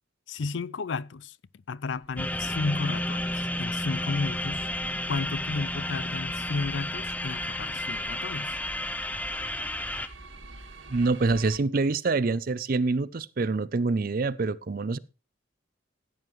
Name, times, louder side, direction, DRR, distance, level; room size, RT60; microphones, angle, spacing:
voice 1, 0.3-1.4 1.7-4.7 5.1-8.6, left 3 dB, 70° left, 0.5 m, -33 dB
sound 1, 1.9-11.6, right 2 dB, 80° right, 1.8 m, -48 dB
sound 2, 2.2-10.1, left 1 dB, 10° left, 0.6 m, -32 dB
voice 2, 10.9-15.0, right 3 dB, 45° right, 0.5 m, -26 dB
15.5 x 9.4 x 3.1 m
head